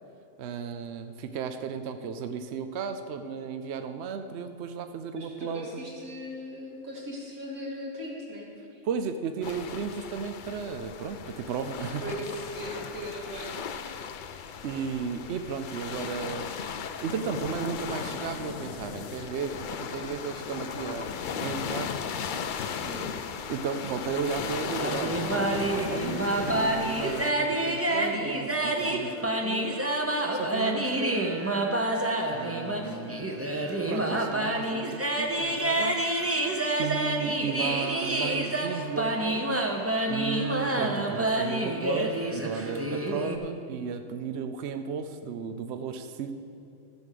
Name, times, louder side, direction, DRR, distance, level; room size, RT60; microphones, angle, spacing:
voice 1, 0.4-5.7 8.8-12.0 14.6-16.5 17.0-21.1 21.4-22.0 23.5-29.8 30.3-31.5 32.3-33.3 33.9-36.1 36.4-36.5 36.8-39.5 40.1-46.3, right 6 dB, 60° right, 8 dB, 0.8 m, -34 dB
voice 2, 5.2-8.8 12.0-13.7 22.8-23.1, equal, 80° right, -5 dB, 3.1 m, -38 dB
sound 1, 9.4-27.3, left 7 dB, 65° left, 0.5 m, -37 dB
sound 2, 17.3-19.3 21.0-23.4 25.1-26.7, left 7 dB, 80° left, 1.0 m, -40 dB
sound 3, 24.5-43.4, right 1 dB, 15° right, 0.7 m, -28 dB
14.5 x 6.3 x 6.7 m, 2.8 s
omnidirectional pair, 1.4 m